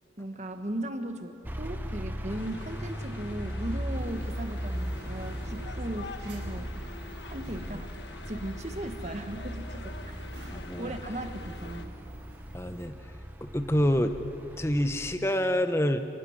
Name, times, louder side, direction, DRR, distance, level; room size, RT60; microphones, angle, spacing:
voice 1, 0.2-6.7 7.3-7.9 8.3-10.3 10.8-11.9, right 1 dB, 40° right, 6 dB, 1.5 m, -37 dB
sound 1, 1.4-15.2, equal, 10° right, 0.9 m, -38 dB
sound 2, 2.3-11.9, left 3 dB, 80° left, 1.3 m, -46 dB
sound 3, 3.9-12.9, right 1 dB, 85° right, 4.5 m, -49 dB
voice 2, 10.5-10.9 12.5-13.1 13.4-14.2 14.6-16.1, equal, 15° left, 8 dB, 0.9 m, -27 dB
30.0 x 12.5 x 9.7 m, 2.6 s
head